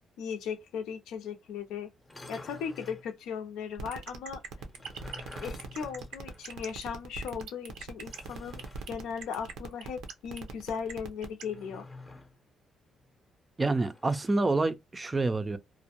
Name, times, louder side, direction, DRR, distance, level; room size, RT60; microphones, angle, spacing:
voice 1, 0.2-1.9 2.3-4.4 5.4-8.6 8.9-11.9, left 7 dB, 90° left, 0.5 m, -37 dB
sound 1, 2.0-3.1 4.6-6.9 7.1-7.2 8.0-8.9 11.4-12.4 13.8-14.4, left 2 dB, 20° left, 0.6 m, -49 dB
sound 2, 3.8-11.4, right 7 dB, 85° right, 0.6 m, -42 dB
voice 2, 13.6-15.6, right 3 dB, 25° right, 0.4 m, -27 dB
2.5 x 2.0 x 2.8 m
cardioid pair, 90°, 0 cm